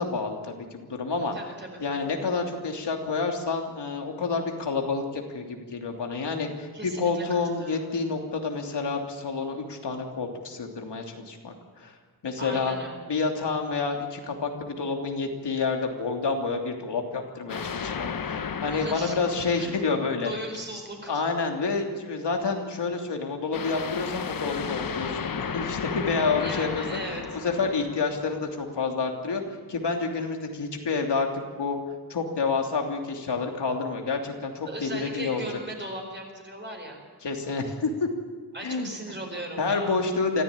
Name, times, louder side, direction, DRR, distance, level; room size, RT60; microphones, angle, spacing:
voice 1, 0.0-1.3 1.8-6.7 7.0-12.0 12.2-12.8 13.1-20.3 21.1-27.0 27.3-29.4 29.7-31.3 31.6-31.8 32.1-35.4 37.2-38.1 38.6-38.9 39.6-40.4, left 4 dB, 85° left, 2 dB, 3.1 m, -29 dB
voice 2, 1.3-1.8 6.7-7.7 12.4-13.1 18.7-19.2 19.6-19.7 20.2-21.2 26.4-27.2 34.7-37.0 38.5-40.0, right 1 dB, 25° right, 1 dB, 4.4 m, -38 dB
sound 1, 17.5-20.6 23.5-28.7, left 6 dB, 55° left, 1.0 m, -34 dB
25.0 x 15.5 x 8.7 m, 1.5 s
wide cardioid pair, 175°, 41 cm